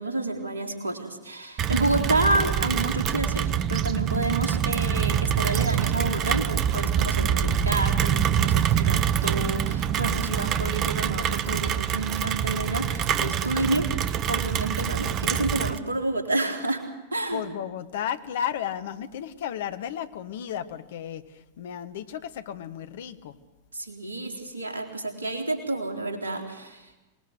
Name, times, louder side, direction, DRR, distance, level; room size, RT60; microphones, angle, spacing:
voice 1, 0.0-16.8 17.1-17.4 23.7-26.9, right 2 dB, 75° right, 4 dB, 3.7 m, -29 dB
Rain, 1.6-15.8, right 9 dB, 35° right, 1.1 m, -25 dB
voice 2, 17.3-23.4, left 9 dB, 55° left, 11 dB, 1.5 m, -33 dB
26.0 x 20.0 x 8.2 m, 1.0 s
figure-of-eight pair, 90°, 0 cm